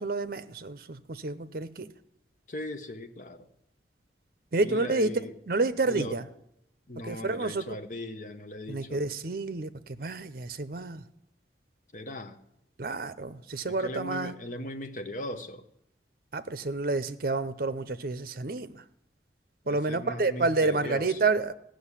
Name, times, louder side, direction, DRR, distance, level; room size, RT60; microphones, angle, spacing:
voice 1, 0.0-1.9 4.5-5.1 5.5-6.2 7.0-7.8 8.7-11.0 12.8-14.3 16.3-18.8 19.7-21.5, right 3 dB, 55° right, 13 dB, 0.7 m, -29 dB
voice 2, 2.5-3.5 4.6-5.4 5.9-6.2 6.9-9.0 11.9-12.4 13.7-15.7 19.7-21.2, left 1 dB, 45° left, 7 dB, 1.0 m, -38 dB
16.0 x 6.4 x 9.8 m, 0.80 s
head